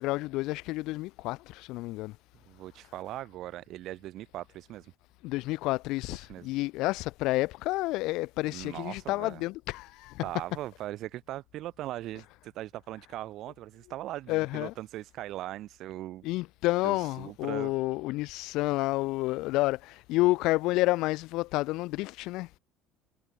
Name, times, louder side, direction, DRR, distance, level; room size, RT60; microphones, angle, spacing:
voice 1, 0.0-2.1 5.2-10.2 14.3-14.7 16.2-22.5, left 20 dB, 70° left, 2.7 m, -30 dB
voice 2, 2.5-4.9 6.3-6.5 8.5-9.4 10.2-16.3 16.8-17.7, right 14 dB, 60° right, 6.0 m, -40 dB
cardioid pair, 125°, 0 cm